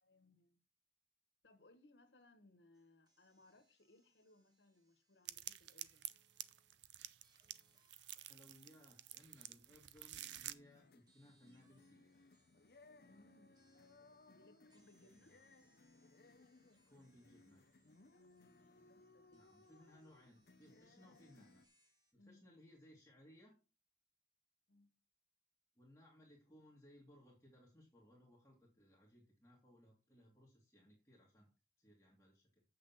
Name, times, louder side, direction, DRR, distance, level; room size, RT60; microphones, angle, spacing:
voice 1, 0.0-0.6 1.4-6.1 13.1-13.6 14.3-15.4 18.1-19.5 22.2-22.4 24.7-24.9, left 2 dB, 85° left, 1.6 m, -68 dB
sound 1, 2.7-6.8 7.2-22.1, right 1 dB, 25° right, 2.1 m, -79 dB
sound 2, 5.3-10.5, right 13 dB, 90° right, 0.6 m, -50 dB
voice 2, 8.0-12.1 15.3-15.4 16.9-17.7 19.3-21.6 22.1-23.6 25.8-31.5 31.8-32.6, equal, 15° left, 2.1 m, -64 dB
sound 3, 10.2-21.7, left 3 dB, 55° left, 0.7 m, -66 dB
7.8 x 6.2 x 5.7 m
head